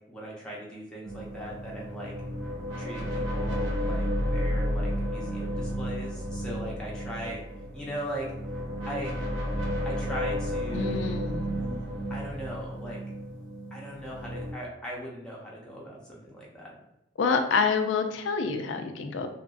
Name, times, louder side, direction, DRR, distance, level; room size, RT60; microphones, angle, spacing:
voice 1, 0.1-2.1 2.8-7.4 7.7-8.3 8.9-9.1 9.8-11.2 11.5-13.0 13.7-16.8, equal, 5° left, -5 dB, 0.7 m, -39 dB
sound 1, 1.1-14.5, equal, 80° right, 0.7 m, -32 dB
voice 2, 10.7-11.5 17.2-19.3, left 5 dB, 85° left, 6 dB, 0.4 m, -27 dB
2.9 x 2.5 x 2.4 m, 0.85 s
head